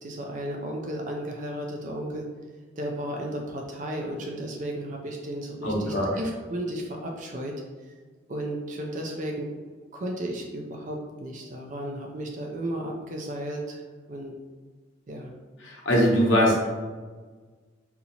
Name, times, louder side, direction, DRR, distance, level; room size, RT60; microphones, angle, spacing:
voice 1, 0.0-2.3 2.8-7.5 8.3-9.5 9.9-13.8 14.1-14.3 15.1-15.3, right 1 dB, 45° right, 1 dB, 0.4 m, -34 dB
voice 2, 5.6-6.1 15.6-16.8, equal, 85° left, -2 dB, 0.9 m, -22 dB
4.1 x 2.7 x 2.7 m, 1.4 s
head